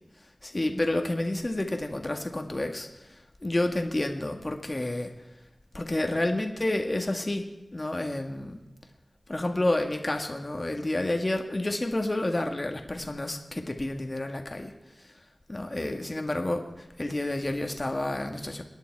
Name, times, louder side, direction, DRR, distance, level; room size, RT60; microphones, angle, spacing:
voice 1, 0.4-5.1 5.7-7.5 7.7-8.6 9.3-14.7 15.5-18.6, left 1 dB, 35° left, 4 dB, 1.7 m, -30 dB
26.5 x 10.5 x 4.7 m, 1.0 s
wide cardioid pair, 70°, 0 cm